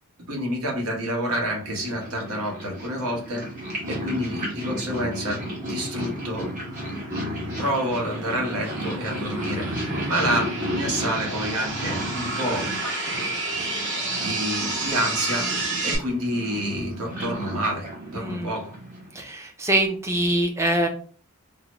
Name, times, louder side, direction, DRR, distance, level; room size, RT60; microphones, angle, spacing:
voice 1, 0.3-3.4 3.9-5.4 5.7-6.5 7.6-9.7 10.1-12.7 13.8-18.8, equal, 90° right, 0 dB, 1.0 m, -28 dB
Purr, 1.6-19.2, equal, 35° right, 1.4 m, -33 dB
sound 1, 5.1-16.0, right 2 dB, 60° right, 1.0 m, -32 dB
voice 2, 18.2-18.5 19.1-20.9, right 1 dB, 15° right, 4 dB, 0.4 m, -24 dB
3.8 x 2.1 x 3.0 m, 0.44 s
head